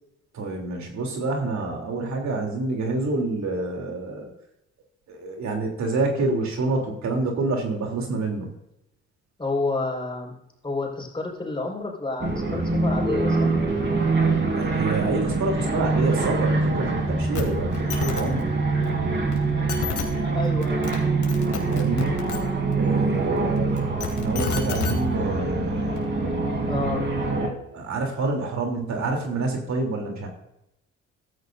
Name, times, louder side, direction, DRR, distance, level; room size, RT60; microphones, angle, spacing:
voice 1, 0.3-4.3 5.1-8.5 14.5-18.5 21.7-22.1 22.7-26.1 27.7-30.3, right 3 dB, 65° right, 1 dB, 3.3 m, -27 dB
voice 2, 9.4-10.3 10.6-13.5 20.3-21.0 23.1-23.3 26.7-27.0, left 3 dB, 15° left, -1 dB, 4.7 m, -29 dB
sound 1, 12.2-27.5, right 3 dB, 40° right, 3.3 m, -24 dB
sound 2, 17.3-17.4 17.7-18.2 19.3-19.4 19.7-20.0 20.6-21.0 21.2-22.4 23.8-24.9 26.0-26.1, left 8 dB, 80° left, 2.7 m, -29 dB
15.0 x 13.0 x 2.6 m, 0.83 s
cardioid pair, 90°, 30 cm